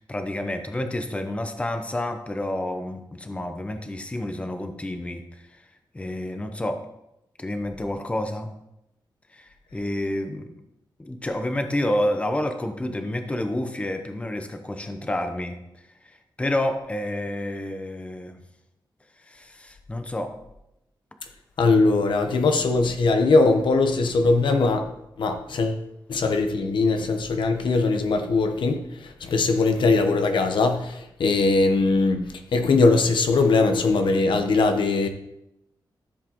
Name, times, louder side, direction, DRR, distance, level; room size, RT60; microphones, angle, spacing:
voice 1, 0.0-6.8 7.4-8.5 9.3-10.6 11.0-18.4 19.1-20.4, left 1 dB, 15° left, 0.8 m, -29 dB
voice 2, 21.6-24.8 25.2-25.8 26.1-32.2 32.5-35.1, left 3 dB, 85° left, 1.0 m, -21 dB
14.0 x 7.4 x 3.0 m
wide cardioid pair, 150°, 8 cm